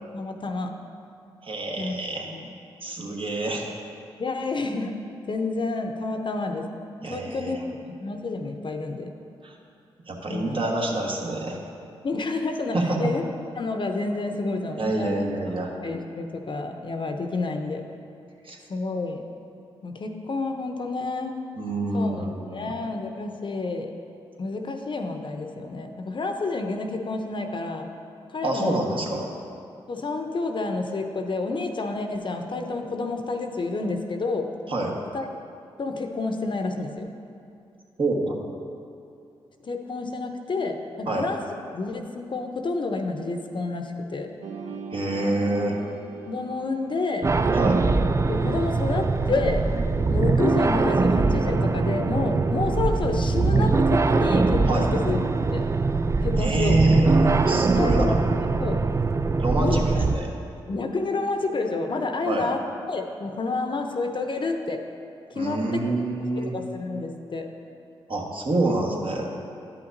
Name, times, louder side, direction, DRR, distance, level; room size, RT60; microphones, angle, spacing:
voice 1, 0.1-0.7 1.8-2.5 4.2-4.9 5.3-6.7 7.1-7.6 7.8-9.1 10.3-10.6 12.0-13.2 13.6-15.2 15.8-17.8 18.7-19.2 19.8-21.4 21.9-22.2 22.5-23.9 24.4-27.9 28.3-28.9 29.9-34.5 35.1-35.2 35.8-37.1 39.6-41.4 41.7-44.3 46.2-47.3 48.3-49.6 50.1-55.2 55.5-55.6 56.2-56.8 57.8-58.2 58.6-58.8 59.6-59.8 60.7-62.6 62.9-64.8 65.3-65.8 66.2-67.5, left 3 dB, 45° left, 4 dB, 0.7 m, -29 dB
voice 2, 1.4-2.3 2.8-3.7 7.0-7.6 9.4-9.5 10.1-11.6 12.7-13.0 14.8-15.7 18.4-18.6 21.6-22.6 28.4-29.3 34.7-34.9 38.0-38.4 41.1-41.3 44.9-45.8 47.5-47.8 54.7-54.9 56.4-58.2 59.4-60.3 62.2-62.5 65.3-66.5 68.1-69.3, right 2 dB, 50° right, -1 dB, 1.3 m, -26 dB
sound 1, 44.4-49.1, right 4 dB, 80° right, 0.6 m, -41 dB
sound 2, 47.2-60.2, right 3 dB, 25° right, 0.3 m, -22 dB
10.5 x 5.8 x 2.7 m, 2.6 s
supercardioid pair, 40°, 11 cm